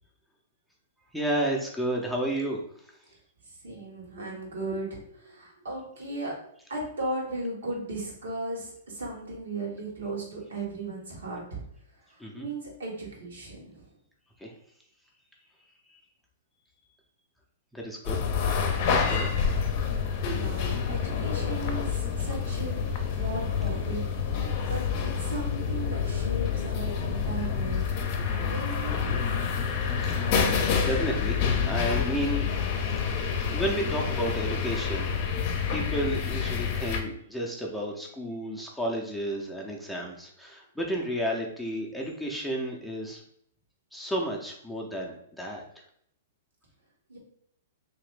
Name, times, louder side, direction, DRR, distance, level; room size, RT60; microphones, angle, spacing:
voice 1, 1.1-2.6 12.2-12.5 14.4-14.5 17.7-18.2 18.9-19.3 29.6-29.7 30.1-31.4 31.7-32.5 33.5-43.2 43.9-45.6, equal, ahead, -3 dB, 0.6 m, -32 dB
voice 2, 3.4-6.4 6.7-11.6 12.1-13.9 20.3-24.8 25.2-29.4 47.1-47.2, right 2 dB, 80° right, -3 dB, 1.4 m, -37 dB
sound 1, 18.0-37.0, left 6 dB, 45° left, 0.6 m, -28 dB
3.0 x 2.9 x 3.2 m, 0.68 s
hypercardioid pair, 125°, 0 cm